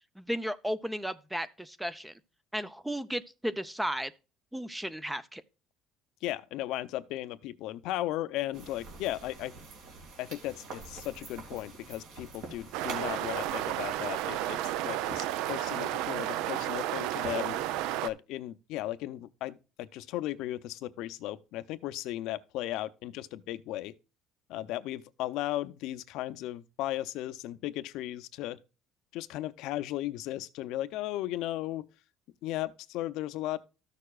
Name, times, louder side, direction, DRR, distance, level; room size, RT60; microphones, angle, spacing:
voice 1, 0.2-2.1 2.5-4.1 4.5-5.4, equal, 5° right, 0.4 m, -34 dB
voice 2, 6.2-9.5 10.2-17.6 18.0-23.9 24.5-28.6 29.1-31.9 32.4-33.6, left 15 dB, 70° left, 0.6 m, -36 dB
sound 1, 8.5-17.7, right 4 dB, 65° right, 2.5 m, -48 dB
sound 2, 12.7-18.1, right 14 dB, 80° right, 0.4 m, -32 dB
13.5 x 6.7 x 2.3 m
cardioid pair, 160°, 0 cm